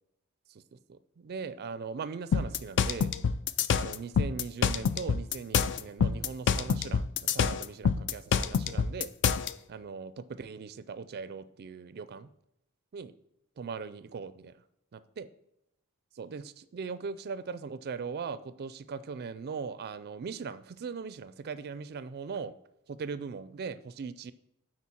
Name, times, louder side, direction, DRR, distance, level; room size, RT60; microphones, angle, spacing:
voice 1, 0.5-3.1 3.7-9.1 9.7-12.3 12.9-13.1 13.6-14.5 14.9-15.3 16.1-22.5 22.9-24.3, right 5 dB, 45° right, 14 dB, 0.4 m, -39 dB
sound 1, 2.3-9.5, left 6 dB, 55° left, 0.4 m, -27 dB
8.3 x 4.7 x 4.3 m, 0.82 s
head